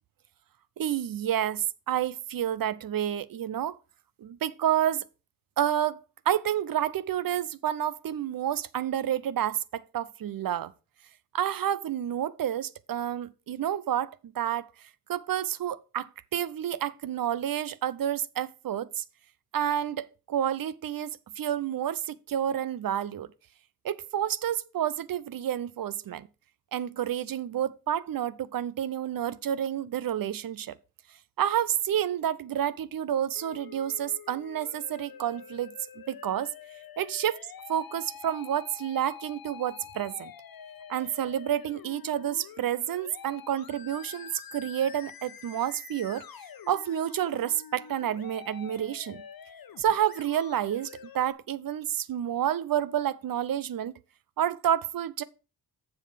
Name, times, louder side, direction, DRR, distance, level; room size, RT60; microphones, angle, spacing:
voice 1, 0.8-3.8 4.2-5.0 5.6-6.0 6.3-10.7 11.3-14.7 15.1-19.0 19.5-21.1 21.4-23.3 23.8-26.3 26.7-30.8 31.4-36.5 37.0-37.4 37.7-40.3 40.9-46.2 46.7-49.2 49.8-54.0 54.4-55.2, right 10 dB, 50° right, 0.7 m, -29 dB
Musical instrument, 33.4-51.3, left 8 dB, 55° left, 1.1 m, -47 dB
7.2 x 6.8 x 5.0 m
supercardioid pair, 55°, 43 cm